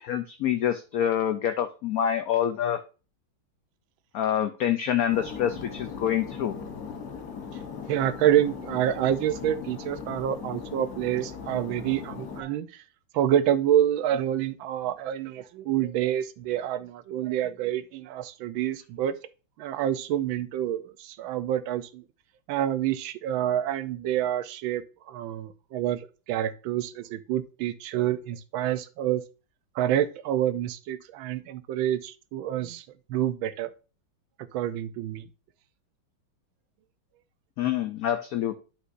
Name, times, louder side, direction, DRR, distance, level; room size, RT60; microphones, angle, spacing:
voice 1, 0.0-2.8 4.1-6.6 37.6-38.6, left 10 dB, 80° left, 0.7 m, -26 dB
sound 1, 5.1-12.4, left 6 dB, 55° left, 1.2 m, -39 dB
voice 2, 7.9-12.7 13.1-19.1 19.6-22.0 22.5-29.2 29.8-32.8 33.1-33.7 34.5-35.3, right 11 dB, 85° right, 1.4 m, -27 dB
11.0 x 5.1 x 2.6 m
omnidirectional pair, 2.1 m